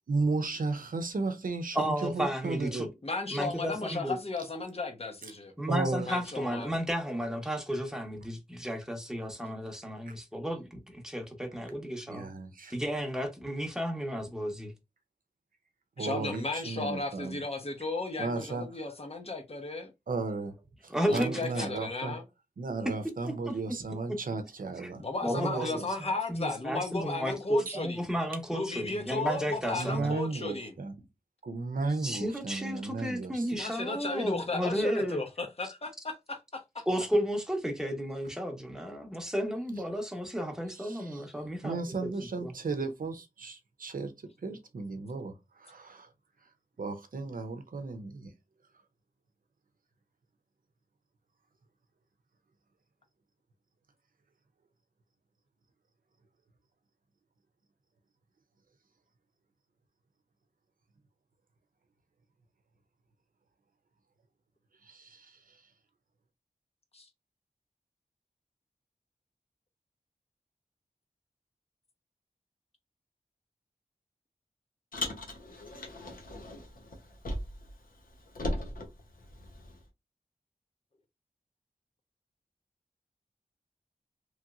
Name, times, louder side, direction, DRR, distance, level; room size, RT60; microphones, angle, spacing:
voice 1, 0.1-2.9 5.7-6.1 10.1-10.2 12.1-12.7 16.0-17.4 18.2-18.7 20.1-20.6 20.8-22.2 22.6-25.0 25.3-25.9 29.7-30.9 31.4-33.6 40.8-41.3 41.6-44.1 44.4-46.1 46.8-48.3 64.8-65.6, right 3 dB, 70° right, 0.6 m, -34 dB
voice 2, 1.7-2.9 3.3-4.2 5.6-12.3 12.7-14.7 20.9-21.7 23.2-23.6 24.1-24.2 24.8-24.9 25.2-25.7 26.0-30.1 32.0-35.2 36.9-42.1 42.4-42.5, equal, 5° right, 0.9 m, -33 dB
voice 3, 3.0-5.5 6.0-6.7 16.0-19.9 21.1-22.2 25.0-28.0 28.5-30.7 33.6-36.8 66.9-67.1, left 3 dB, 45° left, 0.9 m, -35 dB
Car, 74.9-77.7 78.0-79.8, left 1 dB, 75° left, 0.8 m, -38 dB
3.1 x 2.9 x 2.4 m
wide cardioid pair, 75°, 15 cm